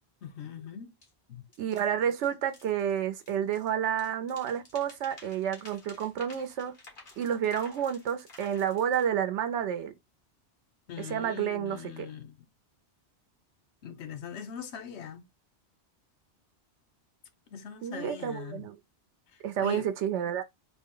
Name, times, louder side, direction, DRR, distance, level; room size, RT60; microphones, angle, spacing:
voice 1, 0.2-1.0 1.3-1.5 10.9-12.5 13.8-15.3 17.5-18.6 19.3-19.9, left 8 dB, 75° left, 1.0 m, -41 dB
sound 1, 1.0-1.1 1.5-3.7 4.0-9.1, left 2 dB, 50° left, 1.6 m, -53 dB
voice 2, 1.6-6.7 7.2-9.9 11.1-11.8 17.8-18.8 19.4-20.4, right 9 dB, 85° right, 0.9 m, -30 dB
3.9 x 2.1 x 3.7 m
omnidirectional pair, 1.2 m